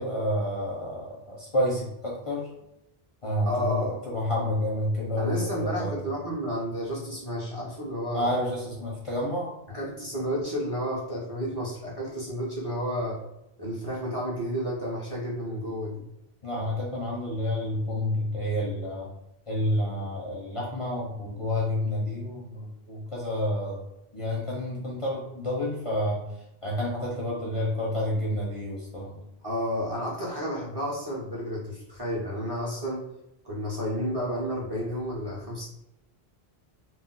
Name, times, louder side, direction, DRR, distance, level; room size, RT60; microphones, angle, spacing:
voice 1, 0.0-2.5 3.2-5.9 8.1-9.5 16.4-19.1 19.5-23.8 24.1-26.2 26.6-29.2, left 1 dB, 40° left, -4 dB, 0.5 m, -29 dB
voice 2, 3.4-3.9 5.2-8.3 9.7-13.2 13.6-16.0 29.4-33.0 33.4-35.7, equal, 30° right, -6 dB, 0.6 m, -31 dB
2.3 x 2.0 x 3.8 m, 0.85 s
omnidirectional pair, 1.0 m